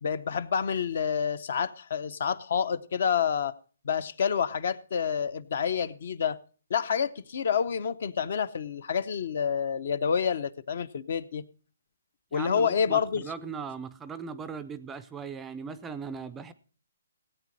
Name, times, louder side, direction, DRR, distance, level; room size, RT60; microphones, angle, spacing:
voice 1, 0.0-3.5 3.8-6.4 6.7-11.5 12.3-13.2, left 7 dB, 50° left, 0.7 m, -28 dB
voice 2, 12.3-16.5, right 6 dB, 10° right, 0.5 m, -38 dB
17.5 x 8.6 x 4.1 m
hypercardioid pair, 170°, 0 cm